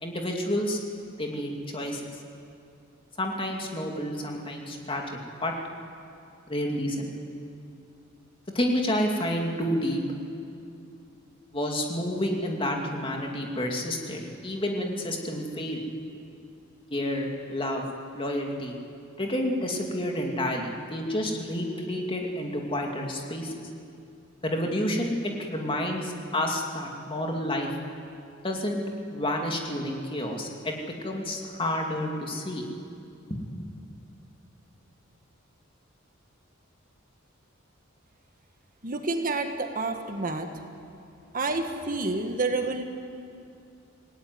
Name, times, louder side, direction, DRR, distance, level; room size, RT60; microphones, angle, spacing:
voice 1, 0.0-0.8 1.2-2.0 3.2-5.0 5.4-5.5 6.5-7.1 8.5-10.0 11.5-15.8 16.9-17.9 18.1-18.8 19.2-23.6 24.4-27.7 28.4-28.8 29.1-30.7 31.0-32.6 33.3-33.6, left 1 dB, 25° left, 1 dB, 2.6 m, -29 dB
voice 2, 38.8-40.5 41.3-42.8, right 3 dB, 40° right, 5 dB, 1.6 m, -29 dB
27.5 x 18.0 x 9.6 m, 2.5 s
head